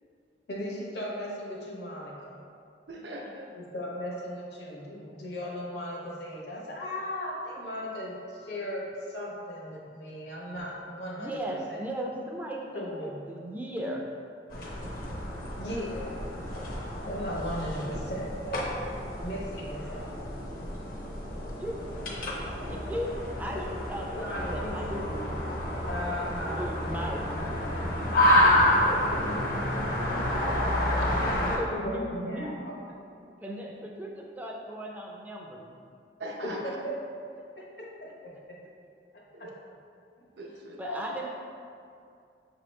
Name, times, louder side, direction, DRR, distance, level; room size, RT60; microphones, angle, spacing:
voice 1, 0.5-2.4 3.5-11.8 12.7-13.3 15.6-16.2 17.1-18.7 19.2-20.2 24.2-24.7 25.9-27.4 28.2-28.5 28.9-29.5 29.8-30.6 30.9-32.7 36.4-37.0 37.6-38.6 40.8-41.3, equal, 70° left, -3 dB, 1.0 m, -37 dB
voice 2, 2.9-3.5 22.2-22.8 36.2-36.6 39.3-39.5 40.4-40.8, right 1 dB, 75° right, -1 dB, 0.6 m, -41 dB
voice 3, 11.2-14.0 21.6-21.8 22.4-23.1 23.4-25.3 26.5-27.2 31.4-32.5 33.4-35.8 40.8-41.3, equal, 10° right, -1 dB, 0.4 m, -37 dB
sound 1, 14.5-31.6, left 1 dB, 55° left, 0.6 m, -29 dB
5.9 x 2.8 x 3.2 m, 2.4 s
head